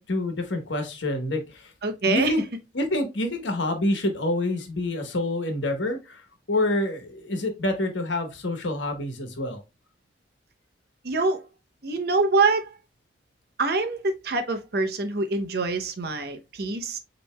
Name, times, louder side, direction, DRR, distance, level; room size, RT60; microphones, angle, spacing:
voice 1, 0.0-1.4 2.1-2.4 2.7-6.2 6.5-9.6, left 1 dB, 85° left, 1.2 m, -27 dB
voice 2, 1.8-2.4 11.0-11.4 11.8-12.7 13.6-17.0, right 3 dB, 55° right, 0.7 m, -25 dB
7.3 x 3.0 x 2.2 m
head